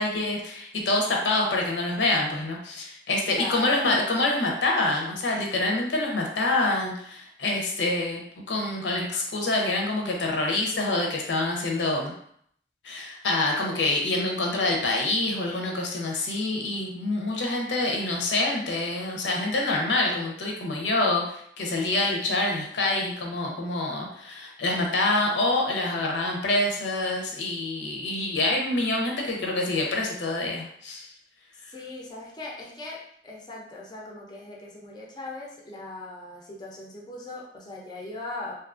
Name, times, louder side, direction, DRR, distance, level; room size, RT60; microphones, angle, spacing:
voice 1, 0.0-8.2 8.5-12.1 12.8-31.1, left 2 dB, 85° left, 0 dB, 0.6 m, -26 dB
voice 2, 3.3-3.7 31.7-38.5, left 2 dB, 25° left, -3 dB, 0.4 m, -39 dB
2.6 x 2.4 x 2.4 m, 0.67 s
head